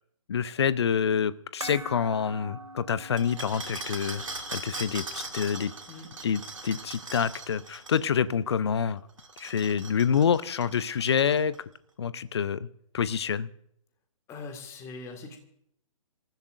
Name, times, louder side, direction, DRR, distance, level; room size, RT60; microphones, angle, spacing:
voice 1, 0.3-4.2 4.5-5.7 6.2-9.0 9.4-11.6 12.0-12.7 12.9-13.5, left 7 dB, 50° left, 17 dB, 0.7 m, -27 dB
sound 1, 1.6-8.0 8.3-8.4, right 1 dB, 90° right, 3.6 m, -45 dB
sound 2, 3.2-8.1 9.1-11.6, right 3 dB, 65° right, 2.5 m, -40 dB
voice 2, 14.3-15.4, left 3 dB, 15° left, 5 dB, 2.0 m, -41 dB
26.5 x 15.0 x 2.6 m, 0.70 s
figure-of-eight pair, 130°, 18 cm